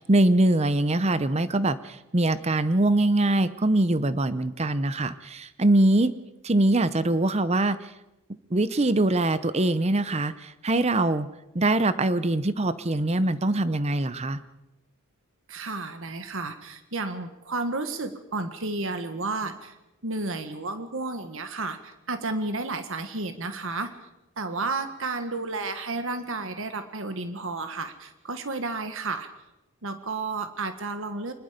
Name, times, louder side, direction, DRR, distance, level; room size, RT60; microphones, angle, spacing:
voice 1, 0.0-6.1 6.4-7.9 8.5-11.3 11.5-14.4, right 2 dB, 30° right, 14 dB, 0.8 m, -23 dB
voice 2, 15.5-19.7 20.0-23.9 24.4-29.3 29.8-31.3, right 3 dB, 60° right, 8 dB, 1.7 m, -32 dB
25.0 x 20.5 x 5.2 m, 0.95 s
head